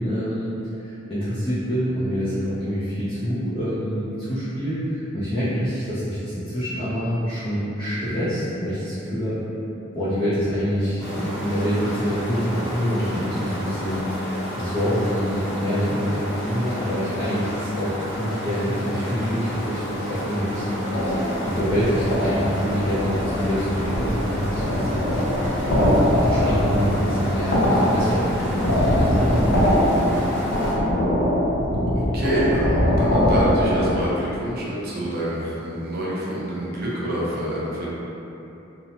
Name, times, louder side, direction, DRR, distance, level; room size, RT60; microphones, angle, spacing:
voice 1, 0.0-9.4 9.9-14.1 14.6-25.1 25.7-29.7, equal, 25° left, -13 dB, 0.5 m, -26 dB
sound 1, 11.0-30.7, equal, 60° left, 0.8 m, -32 dB
sound 2, 20.9-34.1, equal, 90° left, 0.6 m, -22 dB
voice 2, 31.9-37.9, equal, 50° right, -6 dB, 0.6 m, -27 dB
2.8 x 2.0 x 2.7 m, 3.0 s
head